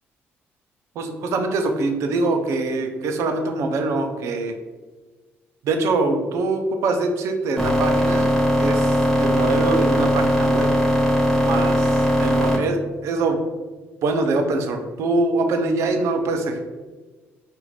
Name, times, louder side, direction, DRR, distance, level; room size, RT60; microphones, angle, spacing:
voice 1, 1.0-4.6 5.6-10.7 11.4-13.4 14.0-16.6, right 3 dB, 75° right, 5 dB, 0.5 m, -24 dB
sound 1, 7.6-12.6, equal, 5° left, 1.3 m, -19 dB
5.0 x 2.5 x 3.2 m, 1.3 s
cardioid pair, 100°, 5 cm